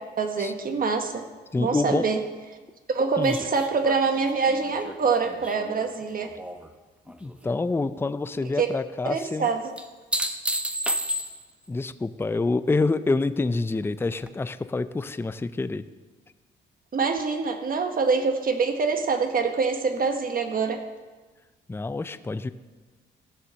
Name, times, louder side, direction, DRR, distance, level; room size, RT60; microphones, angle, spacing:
voice 1, 0.2-1.2 1.6-2.2 2.9-6.3 8.6-8.7 9.0-9.6 16.9-20.8, right 4 dB, 45° right, 6 dB, 1.4 m, -25 dB
voice 2, 1.5-2.1 3.2-3.4 7.2-9.5 11.7-15.8 21.7-22.5, left 3 dB, 10° left, 12 dB, 0.5 m, -27 dB
sound 1, 3.2-6.7 7.1-7.7 9.8-11.7 14.2-14.3, equal, 5° right, 0.9 m, -32 dB
15.0 x 7.2 x 6.5 m, 1.3 s
cardioid pair, 90°, 20 cm